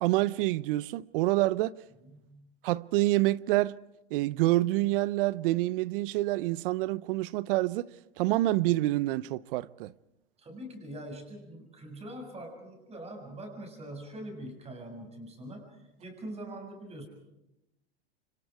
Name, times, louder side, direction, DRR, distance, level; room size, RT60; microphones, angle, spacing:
voice 1, 0.0-1.8 2.6-3.8 4.1-9.9, right 17 dB, 60° right, 0.7 m, -27 dB
voice 2, 2.1-2.5 10.4-17.1, right 1 dB, 20° right, 7.4 m, -43 dB
29.0 x 25.0 x 4.9 m
hypercardioid pair, 115°, 31 cm